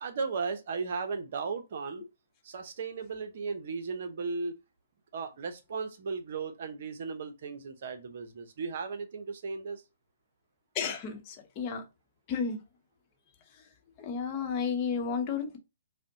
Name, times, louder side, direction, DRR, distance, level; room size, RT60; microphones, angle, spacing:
voice 1, 0.0-2.0 2.4-4.5 5.1-9.8, right 4 dB, 55° right, 0.7 m, -36 dB
voice 2, 10.7-11.8 12.3-12.6 14.0-15.6, left 6 dB, 30° left, 0.9 m, -32 dB
5.0 x 2.1 x 2.7 m
figure-of-eight pair, 125°, 0 cm